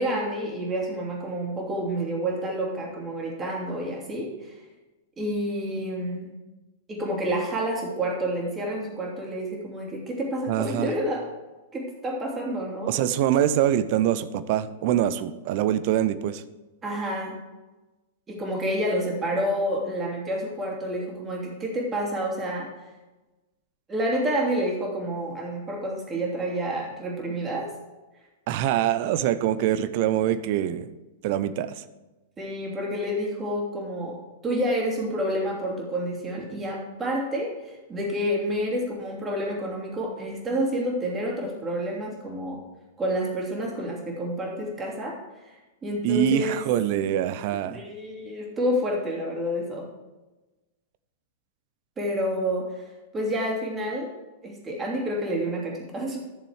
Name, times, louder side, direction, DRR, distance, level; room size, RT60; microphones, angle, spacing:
voice 1, 0.0-4.6 5.2-6.3 6.9-11.3 11.7-12.9 16.8-17.4 18.3-22.7 23.9-27.7 32.4-42.6 43.0-45.2 45.8-46.6 47.6-49.9 52.0-52.8 53.1-54.1 54.4-56.2, equal, 20° right, -1 dB, 3.0 m, -29 dB
voice 2, 10.5-10.9 12.9-16.4 28.5-30.9 31.2-31.8 46.0-47.8, right 11 dB, 45° right, 14 dB, 0.6 m, -24 dB
12.5 x 6.9 x 4.8 m, 1.1 s
figure-of-eight pair, 100°, 0 cm